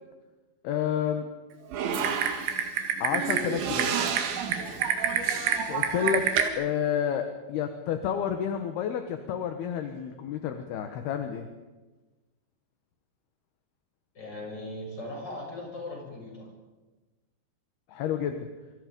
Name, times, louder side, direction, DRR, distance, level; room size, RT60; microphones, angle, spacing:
voice 1, 0.6-1.3 3.0-3.9 5.7-11.5 17.9-18.5, left 8 dB, 65° left, 7 dB, 2.7 m, -30 dB
Typing, 1.7-6.5, right 7 dB, 70° right, 4.0 m, -27 dB
voice 2, 14.1-16.5, left 1 dB, 20° left, -1 dB, 7.9 m, -39 dB
27.5 x 24.0 x 5.3 m, 1.2 s
omnidirectional pair, 5.8 m